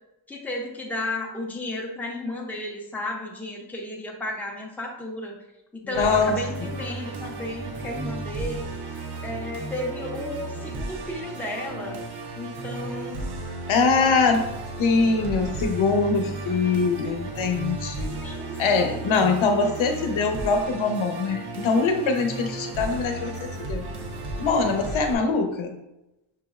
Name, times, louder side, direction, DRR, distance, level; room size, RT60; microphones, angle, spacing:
voice 1, 0.3-5.4 5.9-8.7 9.2-12.0 12.3-13.3 13.9-14.3 18.2-19.3, left 1 dB, 5° left, -1 dB, 0.6 m, -33 dB
voice 2, 5.9-6.4 6.6-6.7 13.7-14.4 14.8-18.2 18.6-23.9 24.4-25.8, left 4 dB, 80° left, 5 dB, 0.7 m, -23 dB
Musical instrument, 5.9-25.1, right 2 dB, 55° right, 0.7 m, -34 dB
6.0 x 3.0 x 2.4 m, 0.92 s
wide cardioid pair, 135°, 47 cm